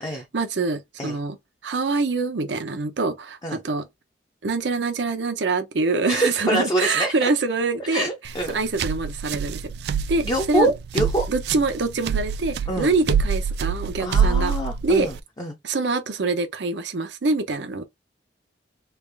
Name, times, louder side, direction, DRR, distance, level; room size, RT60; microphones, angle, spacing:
voice 1, 0.0-1.4 1.6-3.9 4.4-8.1 8.5-10.7 11.3-14.5 14.8-15.1 15.6-17.8, right 3 dB, 90° right, 0.7 m, -25 dB
voice 2, 6.1-7.3 7.9-8.5 10.2-11.3 12.7-12.9 14.0-15.5, right 1 dB, 25° left, 0.5 m, -25 dB
sound 1, 8.3-15.2, right 6 dB, 65° right, 0.3 m, -26 dB
3.3 x 2.4 x 3.3 m
head